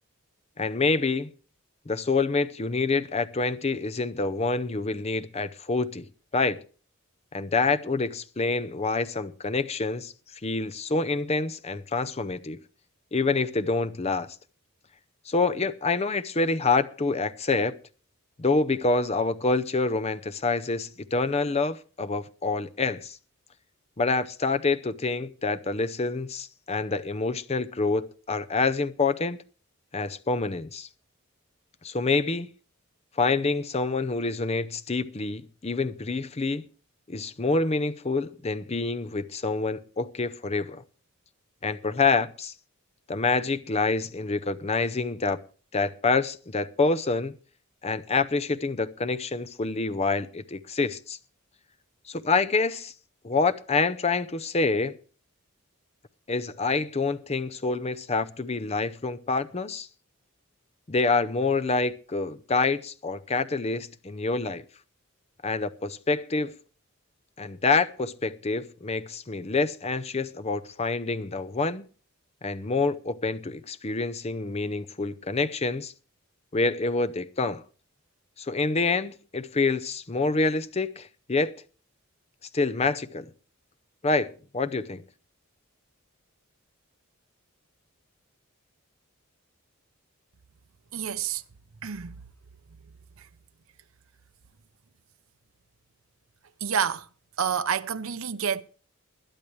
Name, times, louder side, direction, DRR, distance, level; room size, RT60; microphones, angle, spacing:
voice 1, 0.6-1.3 1.9-6.1 6.3-6.6 7.3-10.1 10.4-12.6 13.1-14.4 15.3-17.7 18.4-23.2 24.0-29.4 29.9-30.9 31.8-32.5 33.2-36.6 37.1-40.8 41.6-42.5 43.1-45.4 45.7-47.4 47.8-51.2 52.1-52.9 53.2-55.0 56.3-59.9 60.9-64.6 65.4-66.5 67.4-71.8 72.4-75.9 76.5-77.6 78.4-81.5 82.5-83.3 84.0-85.0, left 3 dB, 30° left, 0.6 m, -27 dB
voice 2, 90.9-91.4 91.8-92.1 93.2-93.3 96.6-97.1 97.4-98.6, right 7 dB, 70° right, 0.7 m, -28 dB
21.0 x 10.5 x 3.1 m
head